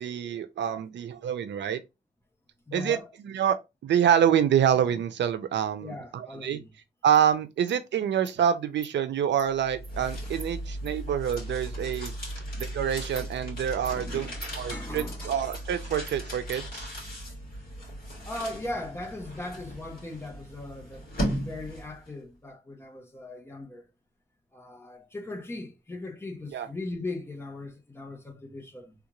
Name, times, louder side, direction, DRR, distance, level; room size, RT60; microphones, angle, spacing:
voice 1, 0.0-1.8 2.7-3.0 3.2-3.6 3.8-6.6 7.0-12.1 12.6-14.3 14.6-16.9 26.5-26.7, right 9 dB, 80° right, 0.5 m, -26 dB
voice 2, 2.7-3.1 5.8-6.7 13.9-15.4 18.3-23.9 24.5-28.9, left 2 dB, 15° left, 0.6 m, -39 dB
Insect, 7.1-7.2 7.7-7.8 8.3-8.4 8.8-8.9 9.4-9.5 9.8-9.9 10.4-10.5 10.9-11.0 11.3-11.4 11.9-12.0 12.6-12.7 13.2-13.3 13.9-14.0 14.4-14.5 15.0-15.1 15.5-15.6 16.1-16.2 16.5-16.6, right 5 dB, 30° right, 0.5 m, -45 dB
sound 1, 9.5-22.1, equal, 55° left, 2.1 m, -37 dB
3.5 x 2.5 x 2.9 m
wide cardioid pair, 160°, 18 cm